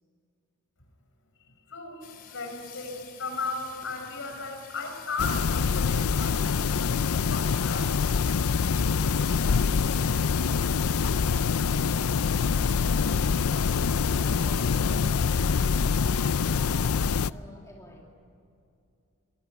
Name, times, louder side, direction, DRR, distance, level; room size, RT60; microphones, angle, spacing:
voice 1, 1.5-7.9, left 3 dB, 60° left, 4 dB, 5.7 m, -36 dB
Water tap faucet / Sink (filling or washing), 2.0-12.9, left 7 dB, 45° left, 2.9 m, -48 dB
sound 1, 3.7-4.8 5.6-5.8 6.7-7.0 8.0-8.2 9.9-10.0 11.3-11.5 13.0-13.2, right 4 dB, 20° right, 7.2 m, -61 dB
sound 2, 5.2-17.3, left 5 dB, 80° left, 0.5 m, -25 dB
voice 2, 16.4-18.0, left 1 dB, 15° left, -1 dB, 2.7 m, -50 dB
25.0 x 20.5 x 9.9 m, 2.5 s
head